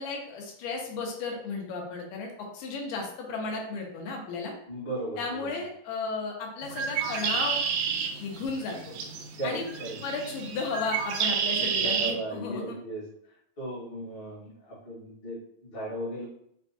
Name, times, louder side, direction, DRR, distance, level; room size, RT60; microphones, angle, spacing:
voice 1, 0.0-4.5 5.2-7.6 8.2-8.9 9.4-9.7 10.0-12.8, left 4 dB, 80° left, 1 dB, 2.4 m, -34 dB
voice 2, 4.7-5.5 9.4-9.9 11.5-13.0 13.6-15.4 15.6-16.3, right 1 dB, 35° left, -8 dB, 0.9 m, -36 dB
Bird, 6.6-12.1, right 6 dB, 80° right, 1.7 m, -30 dB
6.0 x 2.2 x 2.8 m, 0.73 s
omnidirectional pair, 3.8 m